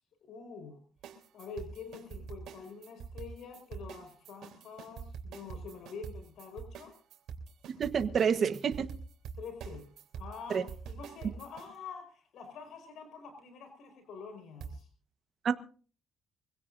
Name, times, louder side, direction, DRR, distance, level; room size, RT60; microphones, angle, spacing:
voice 1, 0.2-0.8 1.3-6.9 9.4-9.9 10.1-14.9, left 5 dB, 80° left, 5 dB, 4.9 m, -46 dB
sound 1, 1.0-11.7 14.6-14.7, right 6 dB, 80° right, 3.4 m, -45 dB
voice 2, 7.7-8.9 10.5-10.6 15.4-15.5, right 7 dB, 55° right, 9 dB, 1.3 m, -28 dB
25.0 x 16.5 x 2.7 m, 0.40 s
cardioid pair, 90°, 0 cm